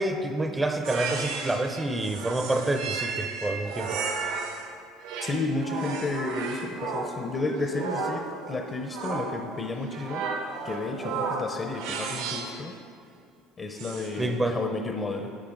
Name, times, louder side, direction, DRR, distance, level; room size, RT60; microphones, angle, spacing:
voice 1, 0.0-4.0 14.2-14.6, right 2 dB, 15° right, 7 dB, 0.6 m, -28 dB
sound 1, 0.8-4.7 5.0-12.6 13.8-14.3, right 4 dB, 85° right, 1.2 m, -34 dB
voice 2, 5.2-10.3 10.6-12.8 13.6-15.4, left 3 dB, 30° left, 4 dB, 0.7 m, -32 dB
10.0 x 8.6 x 3.9 m, 2.3 s
supercardioid pair, 105°, 0 cm